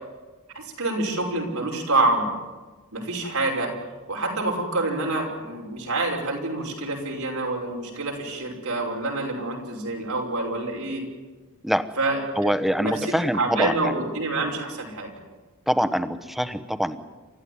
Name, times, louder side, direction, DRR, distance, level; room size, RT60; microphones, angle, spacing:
voice 1, 0.5-2.3 2.9-3.7 4.1-11.0 12.0-15.1, right 2 dB, 90° right, 0 dB, 5.8 m, -27 dB
voice 2, 12.4-14.0 15.7-17.0, equal, ahead, 11 dB, 1.0 m, -24 dB
29.0 x 14.0 x 9.6 m, 1.3 s
head